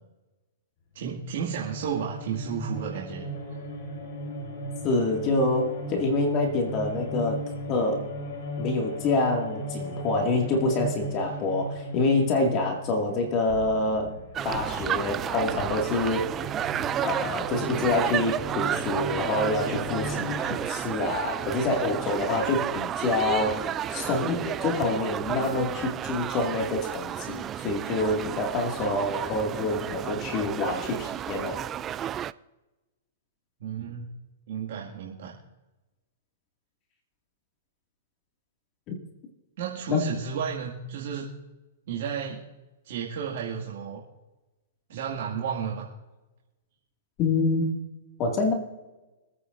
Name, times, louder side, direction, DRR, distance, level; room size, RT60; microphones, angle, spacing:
voice 1, 0.9-3.3 33.6-34.1 34.5-35.3 39.6-41.3 41.9-42.4 42.8-44.0 44.9-45.9, right 7 dB, 65° right, -4 dB, 2.1 m, -32 dB
sound 1, 1.0-20.4, equal, 50° left, 3.8 m, -37 dB
voice 2, 4.8-7.4 7.7-8.1 8.6-16.4 17.0-31.6 39.9-40.1 47.2-47.8 48.2-48.5, left 2 dB, 35° left, 1 dB, 2.2 m, -27 dB
sound 2, 14.3-32.3, right 10 dB, 25° right, 0.3 m, -32 dB
26.0 x 9.3 x 2.6 m, 1.1 s
hypercardioid pair, 140°, 0 cm